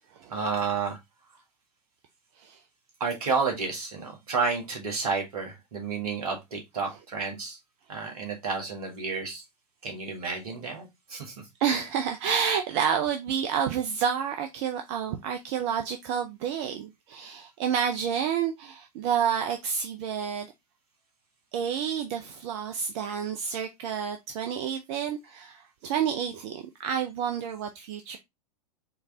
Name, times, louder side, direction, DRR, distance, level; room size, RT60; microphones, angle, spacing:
voice 1, 0.3-1.0 3.0-7.6 7.9-9.4 9.8-11.3, right 5 dB, 65° right, 2.0 m, -31 dB
voice 2, 11.6-20.5 21.5-28.2, right 8 dB, 45° right, 0.6 m, -29 dB
4.6 x 3.3 x 3.5 m
figure-of-eight pair, 95°, 21 cm